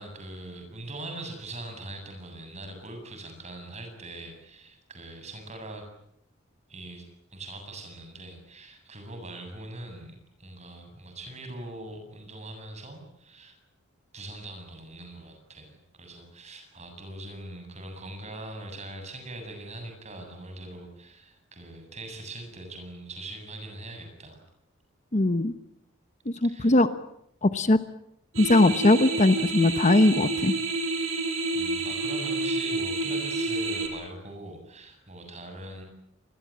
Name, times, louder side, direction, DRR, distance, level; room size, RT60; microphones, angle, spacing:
voice 1, 0.0-5.9 6.7-13.6 14.1-24.4 26.4-26.8 31.5-35.8, right 2 dB, 35° right, 5 dB, 7.7 m, -42 dB
voice 2, 25.1-25.5 26.3-26.9 27.4-27.8 28.4-30.5, left 2 dB, 35° left, 11 dB, 1.1 m, -20 dB
sound 1, 28.3-33.9, right 2 dB, 85° right, 5.7 m, -29 dB
27.0 x 22.0 x 8.7 m, 0.74 s
head